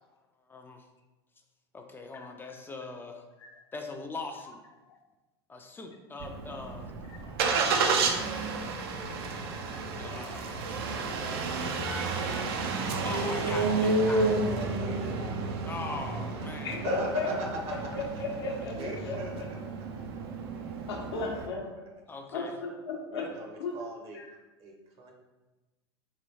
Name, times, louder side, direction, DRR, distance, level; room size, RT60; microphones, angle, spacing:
voice 1, 0.5-0.8 1.7-3.2 3.7-4.6 5.5-6.9 7.7-8.4 9.7-11.0 13.1-14.4 15.7-16.8 22.1-22.5, left 3 dB, 15° left, 3 dB, 0.3 m, -41 dB
Engine starting, 6.2-21.5, right 3 dB, 65° right, 0.4 m, -31 dB
voice 2, 11.8-13.5 14.5-15.6 15.8-18.1 18.7-19.7 20.7-21.7 23.1-24.2 24.6-25.1, right 2 dB, 45° right, 1 dB, 0.8 m, -42 dB
voice 3, 16.6-17.3 17.9-19.2 20.9-21.7 22.3-23.3 23.6-23.7 24.1-24.3, left 3 dB, 70° left, 0 dB, 0.7 m, -34 dB
3.1 x 3.0 x 2.7 m, 1.1 s
hypercardioid pair, 85°, 14 cm